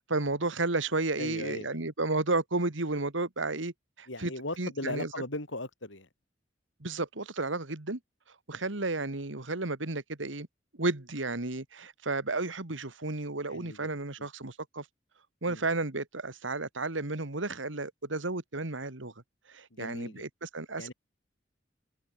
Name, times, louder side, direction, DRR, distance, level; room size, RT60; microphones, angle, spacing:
voice 1, 0.1-3.7 4.0-4.3 4.6-5.1 6.8-8.0 8.5-10.5 10.8-14.9 15.4-19.1 19.5-20.9, right 2 dB, 85° right, 2.2 m, -32 dB
voice 2, 1.2-1.8 4.1-6.1 13.5-13.9 14.2-14.3 15.4-15.6 19.7-20.3 20.8-20.9, left 2 dB, 85° left, 7.3 m, -38 dB
head